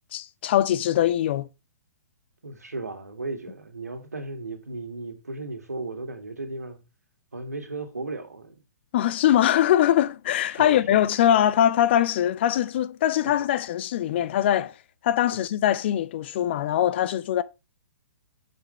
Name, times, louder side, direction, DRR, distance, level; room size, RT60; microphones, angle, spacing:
voice 1, 0.1-1.5 8.9-14.7 15.0-17.4, left 11 dB, 40° left, 0.5 m, -22 dB
voice 2, 2.4-6.8 7.3-8.6 10.5-11.3 13.2-13.3 15.3-15.4, right 3 dB, 75° right, 1.9 m, -36 dB
8.8 x 6.9 x 3.1 m
figure-of-eight pair, 120°, 9 cm